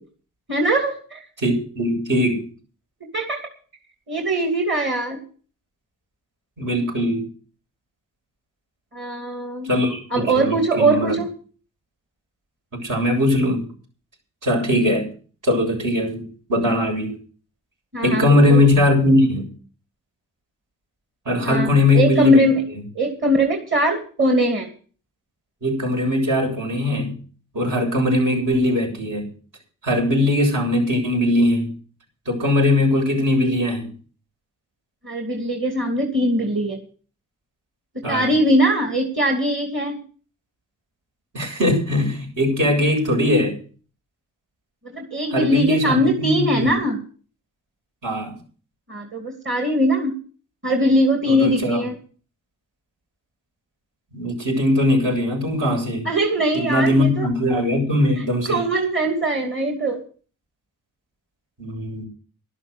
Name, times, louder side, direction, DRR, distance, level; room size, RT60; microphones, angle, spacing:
voice 1, 0.5-1.2 3.1-3.4 4.1-5.2 8.9-9.7 10.1-11.3 17.9-18.6 21.4-22.6 22.9-24.7 35.0-36.8 37.9-40.0 44.9-47.0 48.9-50.1 50.6-51.9 56.0-57.3 58.4-60.0, right 1 dB, 35° right, 2 dB, 2.8 m, -21 dB
voice 2, 1.4-2.4 6.6-7.3 9.7-11.2 12.7-13.6 14.4-15.1 15.4-17.1 18.0-19.5 21.3-22.4 25.6-27.1 27.5-29.3 29.8-31.7 32.3-33.9 38.0-38.3 41.3-43.6 45.3-46.7 48.0-48.4 51.3-51.8 54.1-56.1 56.5-58.6 61.6-62.0, left 1 dB, 65° right, 2 dB, 7.5 m, -20 dB
12.0 x 12.0 x 6.5 m, 0.41 s
cardioid pair, 75°, 34 cm